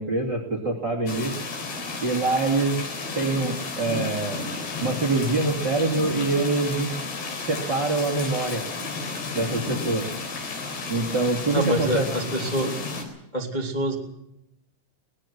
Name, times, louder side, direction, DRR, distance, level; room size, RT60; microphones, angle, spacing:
voice 1, 0.0-1.3 2.0-2.8 3.1-4.5 4.8-6.9 7.5-8.6 9.3-10.1 10.9-12.1, right 3 dB, 30° right, 3 dB, 2.0 m, -25 dB
sound 1, 1.1-13.0, left 4 dB, 55° left, 5.7 m, -32 dB
voice 2, 11.5-12.7 13.3-13.9, equal, 15° left, -1 dB, 1.5 m, -26 dB
23.0 x 19.5 x 6.1 m, 0.83 s
omnidirectional pair, 6.0 m